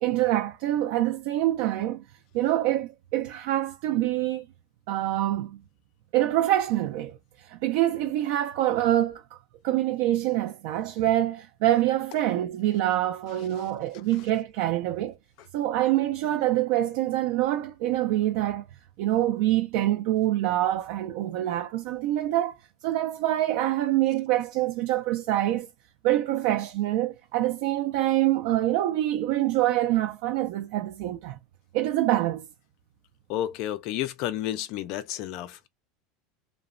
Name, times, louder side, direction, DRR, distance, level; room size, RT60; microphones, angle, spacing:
voice 1, 0.0-2.0 2.3-4.5 4.9-5.6 6.1-9.2 9.6-15.2 15.5-18.7 19.0-22.6 22.8-25.7 26.0-31.4 31.7-32.5, right 14 dB, 55° right, 0.3 m, -25 dB
voice 2, 33.3-35.7, left 12 dB, 45° left, 0.4 m, -31 dB
2.9 x 2.0 x 2.4 m
supercardioid pair, 175°, 0 cm